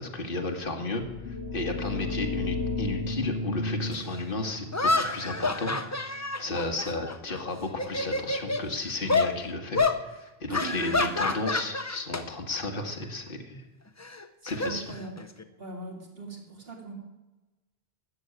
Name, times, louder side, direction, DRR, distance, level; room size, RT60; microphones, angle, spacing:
voice 1, 0.0-9.8 10.1-13.6 14.4-14.9, left 2 dB, 55° left, 4 dB, 1.9 m, -33 dB
sound 1, 0.9-6.5, left 3 dB, 75° left, 1.3 m, -34 dB
voice 2, 1.8-2.1 6.4-6.8 10.5-11.0 14.4-15.1 15.6-16.9, right 2 dB, 65° right, 1 dB, 2.9 m, -41 dB
sound 2, 3.9-4.0 4.7-7.4 7.7-8.6 9.1-9.3 9.7-10.0 10.5-12.2 12.5-12.8 14.0-15.4, left 3 dB, 20° left, 0.6 m, -28 dB
13.5 x 7.2 x 9.2 m, 1.1 s
omnidirectional pair, 1.1 m